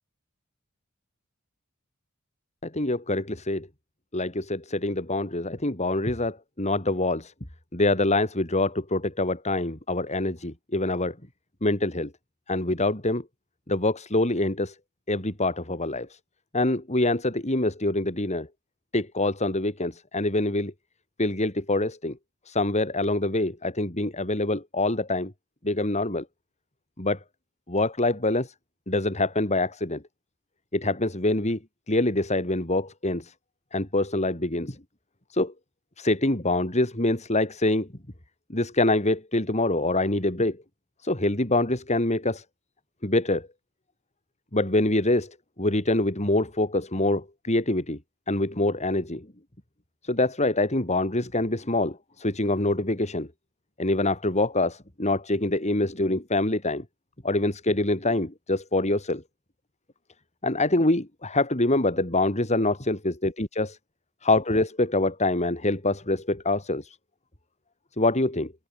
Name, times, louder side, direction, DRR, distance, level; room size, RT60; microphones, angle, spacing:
voice 1, 2.6-3.7 4.1-7.3 7.7-11.2 11.6-12.1 12.5-13.2 13.7-14.8 15.1-16.2 16.5-18.5 18.9-20.7 21.2-22.2 22.5-25.3 25.6-26.3 27.0-27.2 27.7-28.5 28.9-30.0 30.7-31.6 31.9-33.3 33.7-34.8 35.3-35.5 36.0-37.9 38.5-40.6 41.0-42.4 43.0-43.5 44.5-48.0 48.3-49.3 50.0-53.3 53.8-56.8 57.2-59.2 60.4-63.8 64.2-67.0 68.0-68.5, left 2 dB, 35° left, 3.9 m, -25 dB
head